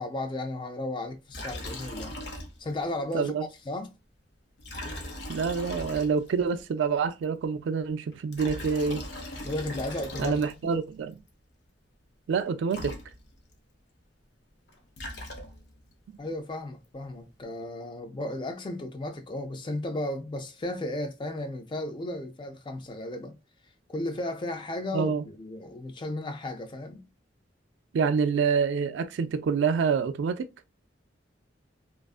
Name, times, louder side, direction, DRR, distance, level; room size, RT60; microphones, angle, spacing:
voice 1, 0.0-2.2 2.6-3.3 3.7-3.9 9.4-10.7 16.2-23.4 23.9-27.1, left 1 dB, 25° left, 0.3 m, -34 dB
Liquid, 1.3-2.8 3.1-3.2 4.6-6.5 8.1-10.8 12.4-12.5 12.7-13.5 14.7-15.8, left 1 dB, 65° left, 0.6 m, -39 dB
voice 2, 3.1-3.5 5.3-9.0 10.2-11.2 12.3-12.9 24.9-25.2 27.9-30.4, right 5 dB, 75° right, 0.3 m, -27 dB
2.5 x 2.3 x 2.3 m
head